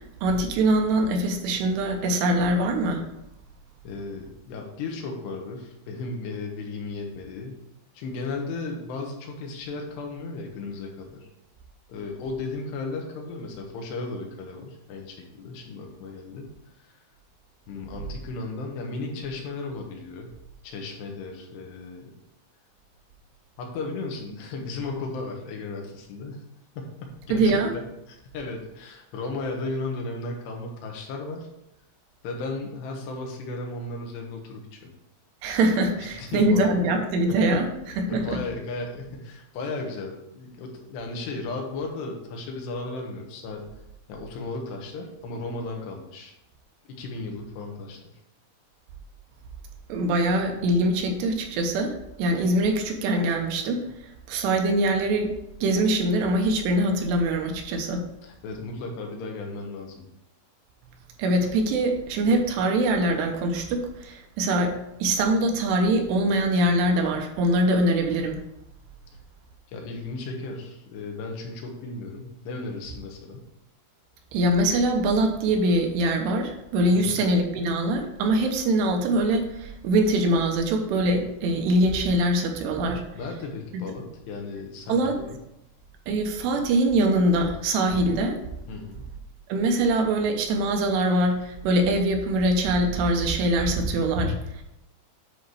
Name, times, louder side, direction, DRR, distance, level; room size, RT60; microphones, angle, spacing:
voice 1, 0.2-3.0 27.3-27.7 35.4-37.7 38.0-38.4 49.9-53.8 54.3-55.3 55.6-58.0 61.2-64.7 65.0-68.4 74.3-83.0 84.9-85.2 86.1-88.4 89.5-94.6, right 1 dB, 85° right, 3 dB, 3.1 m, -23 dB
voice 2, 3.8-7.6 7.9-11.3 11.9-16.5 16.8-17.0 17.7-20.3 20.6-22.1 23.6-26.4 26.8-31.5 32.2-34.9 36.2-36.7 37.3-43.6 44.1-46.3 46.9-48.0 58.2-60.0 69.7-73.4 76.9-77.3 83.1-85.4 88.7-89.0, left 3 dB, 80° left, 1 dB, 3.5 m, -35 dB
9.9 x 4.2 x 4.8 m, 0.85 s
omnidirectional pair, 4.8 m